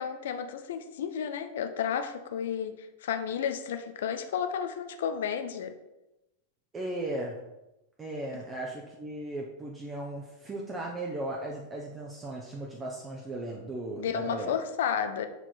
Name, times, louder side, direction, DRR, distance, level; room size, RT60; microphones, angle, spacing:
voice 1, 0.0-5.7 14.0-15.3, left 8 dB, 60° left, 8 dB, 0.6 m, -32 dB
voice 2, 6.7-7.4 8.0-14.6, right 1 dB, 20° right, -1 dB, 0.9 m, -36 dB
7.0 x 4.4 x 4.2 m, 0.94 s
figure-of-eight pair, 90°, 0 cm